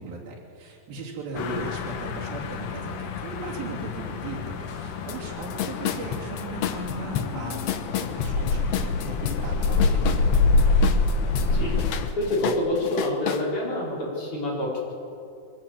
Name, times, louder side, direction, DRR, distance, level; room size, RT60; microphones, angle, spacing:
voice 1, 0.0-10.3, right 2 dB, 75° right, -3 dB, 4.7 m, -37 dB
voice 2, 1.3-1.6 11.4-11.7 12.2-14.8, left 1 dB, 35° left, -5 dB, 5.2 m, -27 dB
sound 1, 1.4-12.1, left 3 dB, 65° left, 2.4 m, -26 dB
sound 2, 5.1-5.2 5.4-11.5 11.8-13.4, left 10 dB, 80° left, 1.4 m, -30 dB
23.5 x 16.0 x 7.5 m, 2.6 s
omnidirectional pair, 4.2 m